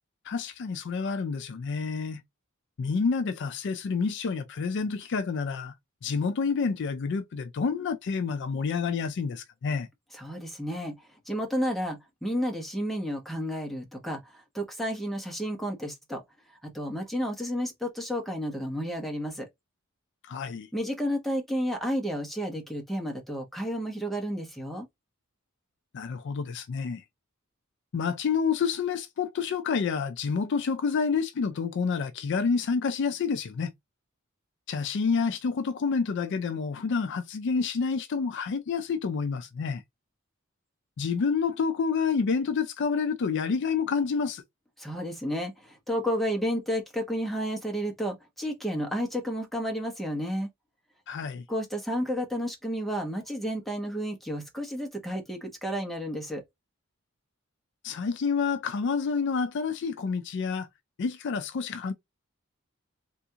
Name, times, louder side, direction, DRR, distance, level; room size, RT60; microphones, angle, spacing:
voice 1, 0.2-2.2 2.8-5.7 6.0-9.9 20.2-20.7 25.9-27.0 27.9-33.7 34.7-39.8 41.0-44.4 51.1-51.4 57.8-60.7 61.0-61.9, left 5 dB, 60° left, 0.4 m, -28 dB
voice 2, 10.2-10.9 11.3-16.2 16.6-19.5 20.7-24.9 44.8-50.5 51.5-56.4, equal, ahead, 1.0 m, -31 dB
3.4 x 2.5 x 2.7 m
head